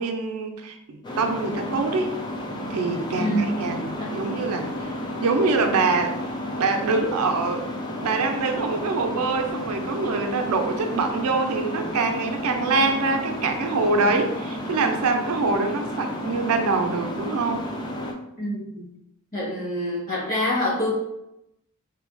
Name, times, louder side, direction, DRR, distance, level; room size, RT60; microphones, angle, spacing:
voice 1, 0.0-2.2 2.5-4.9 5.2-6.2 6.6-7.7 8.0-17.7, right 3 dB, 85° right, 5 dB, 0.4 m, -24 dB
sound 1, 1.0-18.1, left 1 dB, 20° left, 0.3 m, -32 dB
voice 2, 3.1-3.6 4.0-4.2 18.4-18.9 19.3-20.9, equal, 40° left, -5 dB, 1.0 m, -26 dB
3.3 x 2.2 x 2.4 m, 0.85 s
head